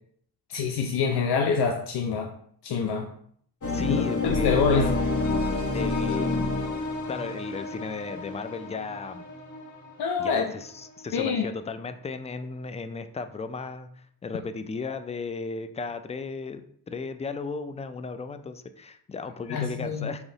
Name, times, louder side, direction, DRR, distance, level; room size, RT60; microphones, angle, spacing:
voice 1, 0.5-2.3 2.6-3.1 3.9-4.9 10.0-10.5 11.1-11.4 19.5-20.1, left 5 dB, 70° left, 3 dB, 0.6 m, -26 dB
sound 1, 3.6-10.5, left 2 dB, 45° left, 1.1 m, -29 dB
voice 2, 3.7-5.0 5.7-6.7 7.1-9.3 10.2-20.2, left 4 dB, 20° left, 10 dB, 0.3 m, -35 dB
3.9 x 3.0 x 3.9 m, 0.63 s
cardioid pair, 70°, 40 cm